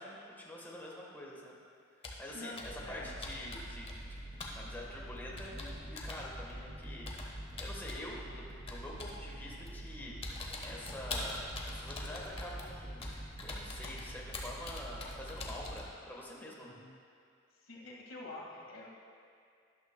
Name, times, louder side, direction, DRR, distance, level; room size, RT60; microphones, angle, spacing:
voice 1, 0.0-1.6 2.2-3.9 4.5-10.2 10.6-13.1 13.4-16.8, left 1 dB, 10° left, -4 dB, 1.2 m, -46 dB
Computer keyboard, 2.0-2.3 2.6-2.9 3.2-4.1 4.4-4.6 5.4-6.3 7.1-8.1 8.7-9.2 9.7-9.9 10.2-15.9, left 2 dB, 30° left, 1.1 m, -44 dB
voice 2, 2.3-3.1 16.6-16.9 17.5-18.9, left 2 dB, 80° left, -3 dB, 1.8 m, -47 dB
sound 1, 2.6-15.8, right 1 dB, 45° right, 2.4 m, -46 dB
12.5 x 12.0 x 2.2 m, 2.3 s
head